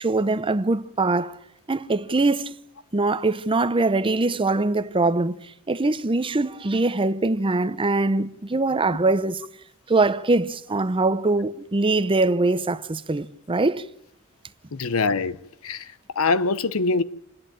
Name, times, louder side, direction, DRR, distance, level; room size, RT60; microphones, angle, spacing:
voice 1, 0.0-1.4 1.7-2.6 2.9-5.4 5.7-9.4 9.9-13.9, right 2 dB, 25° right, 0.7 m, -22 dB
voice 2, 14.7-15.4 15.6-17.0, left 4 dB, 80° left, 0.9 m, -24 dB
28.0 x 10.5 x 8.9 m
head